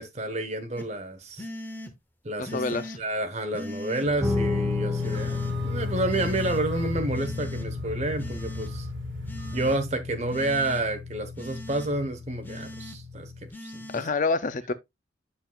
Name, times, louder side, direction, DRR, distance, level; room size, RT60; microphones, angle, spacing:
voice 1, 0.0-1.5 2.2-2.6 3.0-8.9 9.5-14.0, right 2 dB, 35° right, 1.0 m, -30 dB
sound 1, 0.8-0.9 1.4-1.9 2.5-3.0 3.5-4.1 5.0-5.5 6.1-6.6 7.1-7.7 8.2-8.7 9.3-9.8 10.3-10.8 11.4-11.9 12.4-13.0 13.5-14.0, left 1 dB, 10° left, 0.8 m, -40 dB
voice 2, 2.4-3.0 13.9-14.7, left 4 dB, 40° left, 0.5 m, -27 dB
sound 2, 4.0-9.7, right 1 dB, 75° right, 1.7 m, -40 dB
Guitar, 4.2-13.5, left 3 dB, 10° right, 1.6 m, -32 dB
7.3 x 7.0 x 2.3 m
head